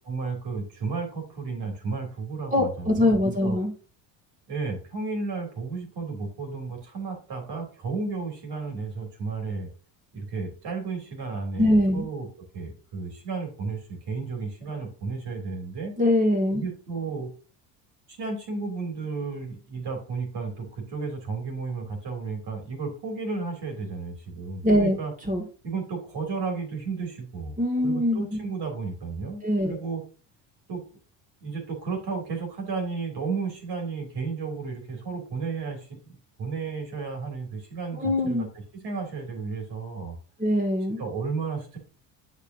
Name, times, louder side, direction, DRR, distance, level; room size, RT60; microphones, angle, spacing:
voice 1, 0.1-3.6 4.5-9.7 10.1-12.3 12.5-15.9 16.5-17.3 18.1-25.1 25.6-27.5 27.8-30.0 30.7-30.8 31.4-38.5 38.7-40.2 41.0-41.8, right 4 dB, 55° right, 3 dB, 2.9 m, -33 dB
voice 2, 2.5-3.7 11.6-12.1 16.0-16.6 24.6-25.0 25.2-25.4 27.6-28.4 29.4-29.8 37.9-38.5 40.4-41.0, left 1 dB, 15° right, 0 dB, 2.0 m, -23 dB
8.0 x 5.3 x 2.7 m, 0.38 s
hypercardioid pair, 70°, 48 cm